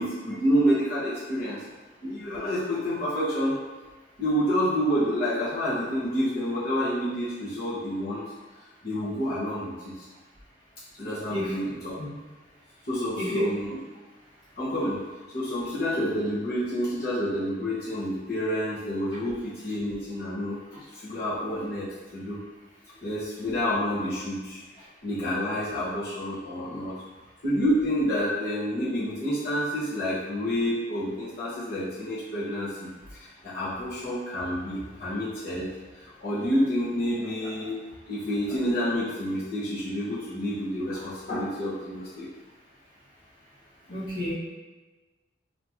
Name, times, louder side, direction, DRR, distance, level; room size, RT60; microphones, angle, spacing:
voice 1, 0.0-1.6 2.0-3.5 4.2-8.2 8.8-10.0 11.0-11.9 12.9-13.8 14.6-15.0 15.3-20.6 20.9-22.4 23.0-24.6 25.0-27.0 27.4-35.7 36.2-37.8 38.1-42.3, equal, 50° left, -11 dB, 1.1 m, -28 dB
voice 2, 43.9-44.3, left 1 dB, 80° left, -8 dB, 1.3 m, -30 dB
3.5 x 2.8 x 3.0 m, 1.3 s
head